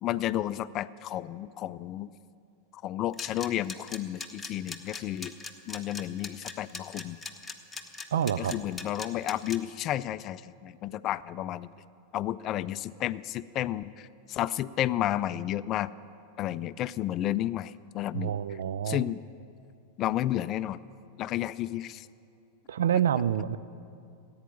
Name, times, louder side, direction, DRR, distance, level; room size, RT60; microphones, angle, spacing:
voice 1, 0.0-2.1 2.7-5.3 5.7-7.2 8.4-11.7 12.1-15.9 16.4-18.6 18.8-19.2 20.0-20.8 21.2-22.1, left 13 dB, 35° left, 0.3 m, -32 dB
sound 1, 3.1-9.6, left 4 dB, 10° left, 1.0 m, -39 dB
voice 2, 8.1-8.5 18.1-19.0 22.7-23.6, right 9 dB, 65° right, 0.4 m, -27 dB
15.5 x 8.7 x 9.1 m
figure-of-eight pair, 90°, 0 cm